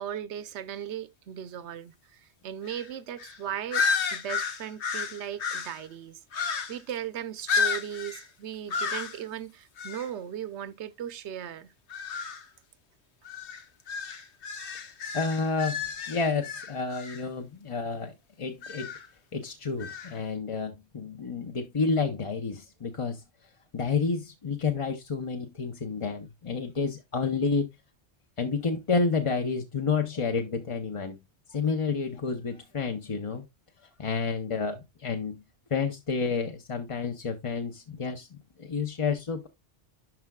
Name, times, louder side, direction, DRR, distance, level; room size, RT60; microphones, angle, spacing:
voice 1, 0.0-11.7, right 10 dB, 75° right, 1.0 m, -37 dB
sound 1, 2.7-2.9 3.2-3.4 3.7-5.8 6.3-6.9 7.5-8.3 8.7-9.2 9.8-10.1 11.9-12.4 13.2-17.2 18.6-19.1 19.8-20.1, left 5 dB, 75° left, 1.3 m, -32 dB
voice 2, 15.1-18.9 19.3-23.2 23.7-27.7 28.4-31.2 31.5-33.4 34.0-35.4 35.7-39.5, left 4 dB, 35° left, 0.7 m, -30 dB
12.0 x 4.6 x 2.3 m
omnidirectional pair, 1.2 m